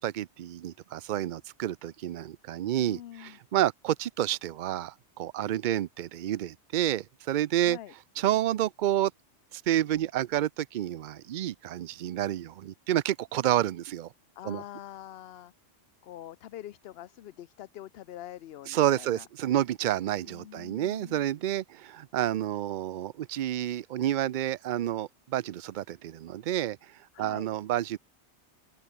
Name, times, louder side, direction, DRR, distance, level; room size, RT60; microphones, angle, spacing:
voice 1, 0.0-7.8 8.2-9.1 9.5-14.1 14.4-14.6 18.7-26.8 27.2-28.0, right 12 dB, 60° right, 0.5 m, -29 dB
voice 2, 2.8-3.4 7.6-7.9 14.4-15.5 16.0-19.3 20.0-21.3 27.1-27.5, left 12 dB, 65° left, 0.8 m, -45 dB
open air
omnidirectional pair, 1.2 m